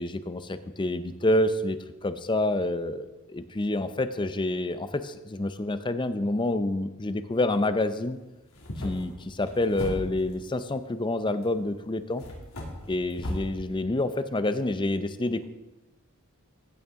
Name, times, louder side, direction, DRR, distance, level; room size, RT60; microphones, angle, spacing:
voice 1, 0.0-8.2 8.8-12.2 12.9-15.5, left 1 dB, 20° left, 11 dB, 0.5 m, -28 dB
sound 1, 8.4-10.4 11.4-11.5 12.2-13.5, equal, 75° left, 2.6 m, -36 dB
15.5 x 8.5 x 3.6 m, 1.1 s
head